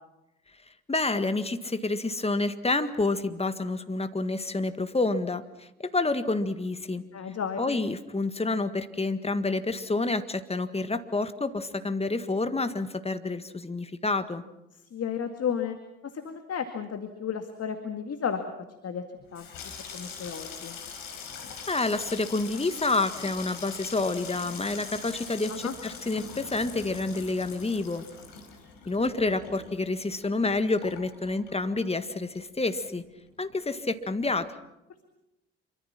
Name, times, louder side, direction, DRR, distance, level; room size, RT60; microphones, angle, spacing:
voice 1, 0.9-7.0 7.6-14.4 21.7-28.0 28.9-33.0 33.4-34.5, left 3 dB, 15° left, 10 dB, 1.8 m, -28 dB
voice 2, 7.1-7.8 14.9-15.8 16.0-18.4 18.8-19.0 19.3-19.5 19.9-20.8 25.5-25.7, left 7 dB, 40° left, 7 dB, 2.2 m, -33 dB
Water tap faucet / Sink (filling or washing), 19.2-32.1 32.3-33.0 33.3-33.6, left 6 dB, 60° left, 5.1 m, -42 dB
26.5 x 24.5 x 6.0 m, 0.94 s
figure-of-eight pair, 50°, 38 cm